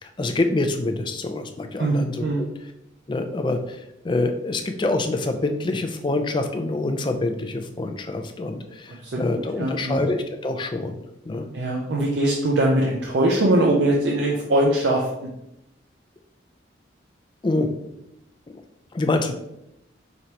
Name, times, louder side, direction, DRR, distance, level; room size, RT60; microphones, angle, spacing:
voice 1, 0.0-2.5 3.1-11.5 17.4-17.7 18.9-19.3, left 2 dB, 25° left, 6 dB, 0.3 m, -26 dB
voice 2, 1.8-2.4 9.0-10.0 11.5-15.3, right 1 dB, 65° right, -1 dB, 0.5 m, -22 dB
5.1 x 3.1 x 2.8 m, 0.84 s
head